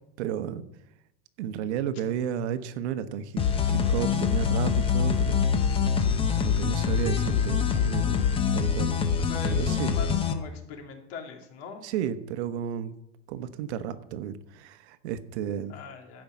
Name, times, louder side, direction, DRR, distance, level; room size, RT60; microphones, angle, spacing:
voice 1, 0.2-0.7 1.4-5.5 6.3-8.3 8.5-8.9 9.5-9.9 11.8-12.9 13.3-15.7, right 9 dB, 65° right, 11 dB, 1.1 m, -32 dB
sound 1, 3.4-10.3, left 7 dB, 15° left, 0.8 m, -25 dB
voice 2, 9.2-11.9 15.7-16.2, left 4 dB, 60° left, 3 dB, 2.8 m, -41 dB
15.0 x 5.4 x 7.3 m, 0.81 s
supercardioid pair, 155°, 36 cm